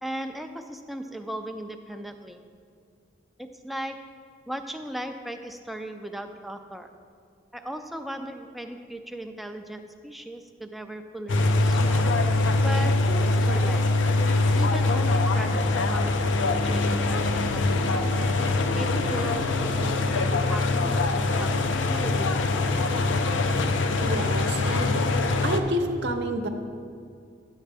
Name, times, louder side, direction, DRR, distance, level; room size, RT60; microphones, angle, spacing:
voice 1, 0.0-2.4 3.4-4.1 4.5-6.9 7.5-12.1 12.6-13.9 14.5-18.1 18.7-21.6 21.9-22.7, right 1 dB, ahead, 5 dB, 0.3 m, -37 dB
sound 1, 11.3-25.6, left 2 dB, 85° left, 0.5 m, -23 dB
voice 2, 24.0-25.0 25.4-26.5, right 1 dB, 65° right, 5 dB, 0.7 m, -29 dB
10.5 x 7.3 x 3.4 m, 2.3 s
head